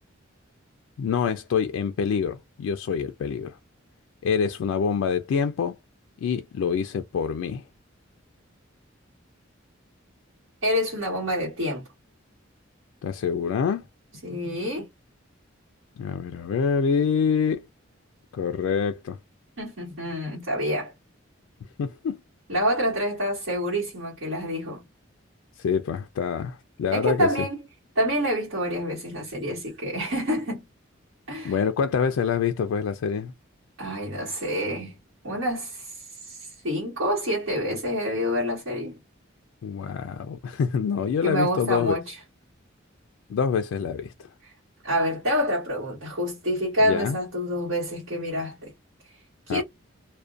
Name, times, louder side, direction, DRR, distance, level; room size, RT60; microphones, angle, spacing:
voice 1, 1.0-3.6 4.2-5.8 6.2-7.6 13.0-13.8 16.0-17.7 18.3-19.2 21.8-22.2 25.6-27.5 31.4-33.3 39.6-41.9 43.3-44.3 46.8-47.2 49.5-49.6, left 6 dB, 85° left, 0.3 m, -26 dB
voice 2, 10.6-11.9 14.2-14.9 19.6-20.9 22.5-24.8 26.9-27.6 27.9-30.6 31.3-31.6 33.8-34.9 35.2-36.0 36.2-38.9 41.2-42.2 44.4-44.5 44.8-48.7 49.5-49.6, equal, 70° right, 1.2 m, -27 dB
2.4 x 2.1 x 2.4 m
head